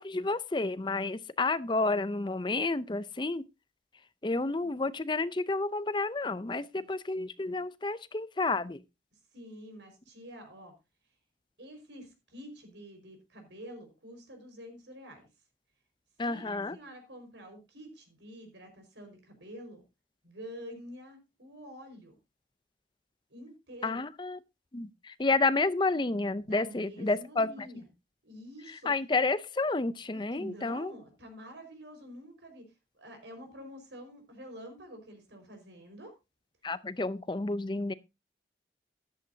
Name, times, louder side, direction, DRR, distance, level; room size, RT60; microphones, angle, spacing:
voice 1, 0.0-3.4 4.2-8.8 16.2-16.8 23.8-24.4 24.7-27.7 28.9-30.9 36.6-37.9, left 3 dB, 25° left, 0.5 m, -30 dB
voice 2, 9.1-10.7 11.6-15.3 16.3-19.8 20.2-22.2 23.3-24.0 26.4-27.9 28.2-28.9 30.1-36.2, equal, 85° right, 5.0 m, -48 dB
13.5 x 11.0 x 2.7 m
head